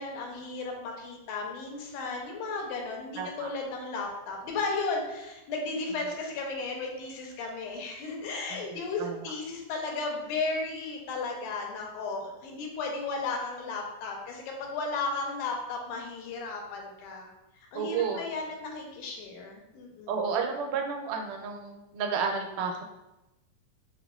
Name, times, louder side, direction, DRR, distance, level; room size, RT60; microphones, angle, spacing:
voice 1, 0.0-17.3 17.7-20.2, left 3 dB, 85° left, 1 dB, 2.1 m, -34 dB
voice 2, 3.2-3.5 5.9-6.0 8.5-8.6 9.0-9.3 17.7-18.2 20.1-22.8, right 6 dB, 90° right, 3 dB, 2.1 m, -31 dB
6.5 x 2.4 x 2.3 m, 0.97 s
omnidirectional pair, 3.6 m